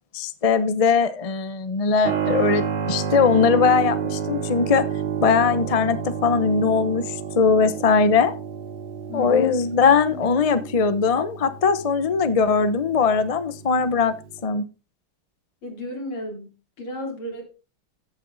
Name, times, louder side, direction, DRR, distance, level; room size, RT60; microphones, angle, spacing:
voice 1, 0.1-4.9 5.2-8.3 9.1-14.1 14.4-14.7, left 5 dB, 60° left, 0.3 m, -20 dB
Keyboard (musical), 2.0-14.4, right 8 dB, 85° right, 2.1 m, -30 dB
voice 2, 9.1-9.5 10.1-10.3 10.6-10.7 15.6-16.5 16.8-17.4, left 2 dB, 80° left, 4.4 m, -33 dB
14.5 x 7.9 x 4.1 m
omnidirectional pair, 2.3 m